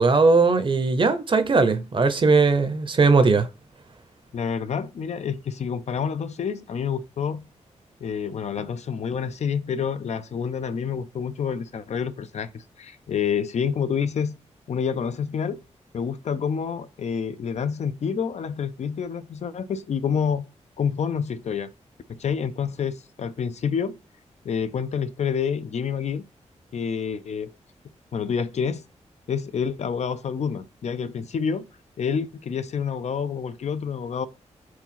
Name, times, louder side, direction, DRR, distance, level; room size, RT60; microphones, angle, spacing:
voice 1, 0.0-3.5, right 4 dB, 45° right, 0.8 m, -19 dB
voice 2, 4.3-7.4 8.0-14.4 14.7-15.6 15.9-20.5 20.8-21.7 22.1-24.0 24.4-26.2 26.7-27.5 28.1-28.8 29.3-31.7 32.0-34.3, left 7 dB, 65° left, 0.5 m, -28 dB
4.8 x 3.9 x 5.7 m
wide cardioid pair, 120°, 12 cm